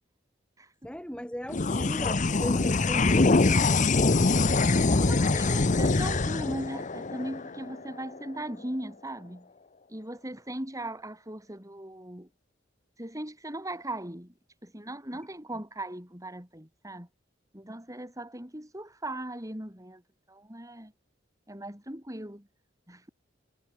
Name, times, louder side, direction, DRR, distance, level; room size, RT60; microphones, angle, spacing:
voice 1, 0.8-4.1 15.5-15.6, equal, 5° left, 6.5 m, -38 dB
sound 1, 1.5-8.2, left 3 dB, 40° left, 0.8 m, -24 dB
voice 2, 5.0-9.5 9.9-12.3 13.0-14.3 14.6-17.1 17.5-20.0 20.3-20.9 21.5-22.4 22.9-23.1, right 1 dB, 20° right, 6.2 m, -38 dB
head